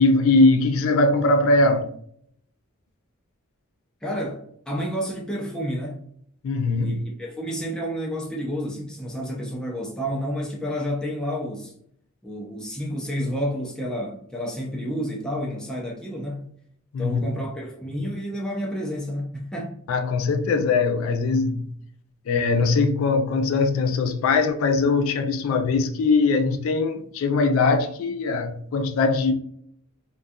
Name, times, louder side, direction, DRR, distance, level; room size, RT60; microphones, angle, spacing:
voice 1, 0.0-1.9 6.4-7.0 16.9-17.3 19.9-21.6 22.3-29.3, left 3 dB, 70° left, 0.3 m, -21 dB
voice 2, 4.0-6.0 6.8-11.7 12.2-16.4 17.0-19.8, equal, 5° left, 0.4 m, -30 dB
2.3 x 2.3 x 2.6 m
head